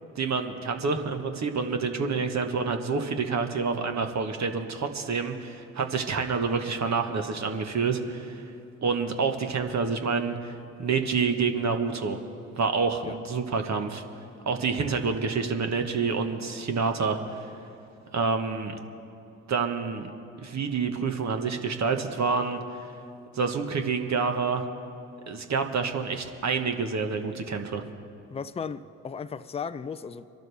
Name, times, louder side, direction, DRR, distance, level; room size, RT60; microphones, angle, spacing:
voice 1, 0.1-8.5 8.8-12.2 12.6-14.0 14.5-17.5 18.1-18.7 19.5-20.1 20.4-22.6 23.3-24.6 25.3-27.8, right 5 dB, 45° right, 1.2 m, -28 dB
voice 2, 28.3-30.3, left 6 dB, 15° left, 0.5 m, -36 dB
23.5 x 12.0 x 3.4 m
hypercardioid pair, 45°, 38 cm